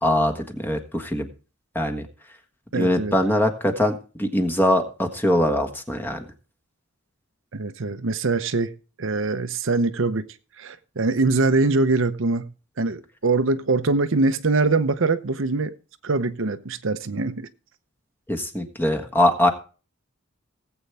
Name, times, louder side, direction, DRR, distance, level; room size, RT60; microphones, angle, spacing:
voice 1, 0.0-1.3 1.7-2.1 2.7-6.3 18.3-19.5, left 1 dB, 10° left, 1.4 m, -22 dB
voice 2, 2.7-3.1 7.5-8.7 9.0-10.3 10.6-12.5 12.8-15.7 16.0-17.5, right 3 dB, 65° right, 0.8 m, -23 dB
18.5 x 8.0 x 3.4 m
head